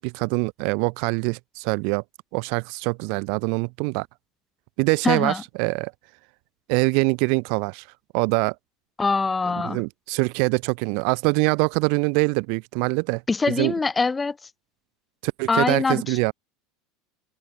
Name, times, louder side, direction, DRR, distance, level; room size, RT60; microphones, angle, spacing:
voice 1, 0.0-2.0 2.3-4.1 4.8-5.9 6.7-7.8 8.1-8.5 9.6-13.2 13.6-13.7 15.2-16.3, right 40 dB or more, 65° right, 1.1 m, -24 dB
voice 2, 5.0-5.4 9.0-9.8 13.3-14.4 15.5-16.2, left 4 dB, 15° left, 2.2 m, -23 dB
supercardioid pair, 125°, 0 cm